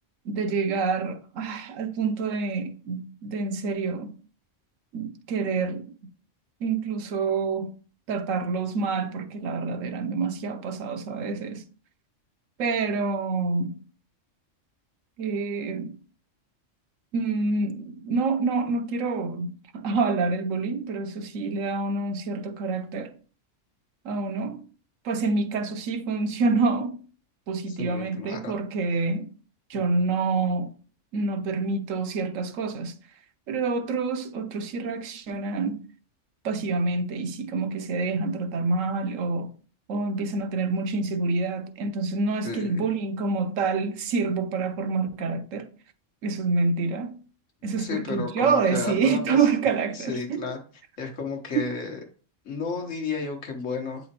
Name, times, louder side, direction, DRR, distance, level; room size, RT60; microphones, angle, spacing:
voice 1, 0.2-4.2 4.9-5.9 6.6-7.8 8.1-11.6 12.6-13.8 15.2-16.0 17.1-23.1 24.0-24.6 25.0-27.0 27.5-29.3 29.7-30.7 31.1-33.0 33.5-35.8 36.4-39.5 39.9-45.7 46.2-47.2 47.6-50.5 51.5-51.6, right 4 dB, 90° right, 1.1 m, -27 dB
voice 2, 27.7-28.5 29.7-29.8 42.4-42.9 47.8-49.5 49.9-50.6 51.0-52.0 52.4-54.1, left 4 dB, 75° left, 1.6 m, -33 dB
8.4 x 4.2 x 2.9 m
omnidirectional pair, 1.3 m